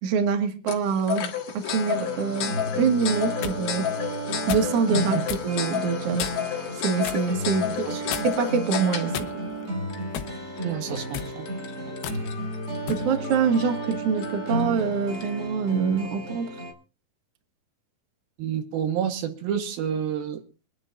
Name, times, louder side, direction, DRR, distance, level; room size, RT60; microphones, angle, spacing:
voice 1, 0.0-4.0 4.5-6.3 6.7-9.3 12.9-16.5, right 6 dB, 50° right, 5 dB, 2.0 m, -25 dB
sound 1, 0.7-15.5, left 9 dB, 55° left, 2.4 m, -33 dB
sound 2, 1.9-16.7, right 1 dB, 35° right, 1.9 m, -33 dB
sound 3, 3.1-3.6 4.5-4.8 5.3-5.5 6.2-6.5 7.0-7.3 8.1-8.5 9.1-9.6 10.1-10.4 11.0-11.3 12.0-12.2 12.9-13.1, left 10 dB, 80° left, 3.0 m, -34 dB
voice 2, 10.6-11.5 18.4-20.4, right 8 dB, 75° right, 6 dB, 2.9 m, -29 dB
25.0 x 11.0 x 2.4 m, 0.33 s
omnidirectional pair, 4.5 m